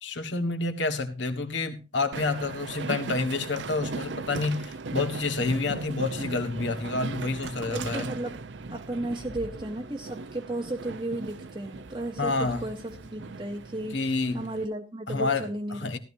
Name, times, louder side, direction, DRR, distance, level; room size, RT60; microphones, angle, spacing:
voice 1, 0.0-8.1 12.2-12.7 13.9-14.5 15.1-16.0, left 3 dB, 75° left, 1.6 m, -29 dB
Train, 2.1-14.7, right 4 dB, 75° right, 0.7 m, -38 dB
voice 2, 7.7-8.4 8.7-16.0, right 1 dB, 25° right, 0.8 m, -34 dB
16.5 x 12.5 x 2.7 m
head